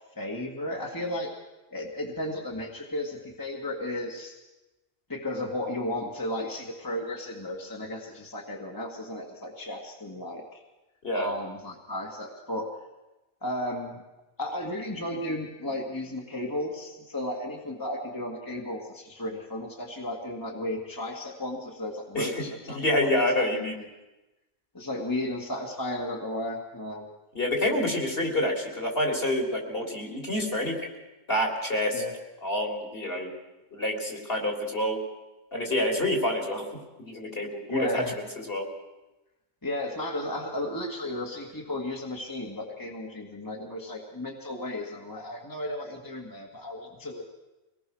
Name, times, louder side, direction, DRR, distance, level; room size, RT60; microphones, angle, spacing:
voice 1, 0.0-1.3 1.7-4.3 5.1-10.6 11.1-12.7 13.4-14.0 14.4-23.1 23.4-23.9 24.7-27.1 31.9-32.1 37.7-38.2 39.6-47.2, left 1 dB, 15° left, 0 dB, 2.1 m, -34 dB
voice 2, 22.7-23.8 27.3-30.8 31.3-32.0 32.4-33.3 33.7-35.0 35.5-36.7 37.0-38.0 38.5-38.7, left 1 dB, 45° left, 2 dB, 3.8 m, -27 dB
24.5 x 19.0 x 6.3 m, 1.0 s
omnidirectional pair, 1.4 m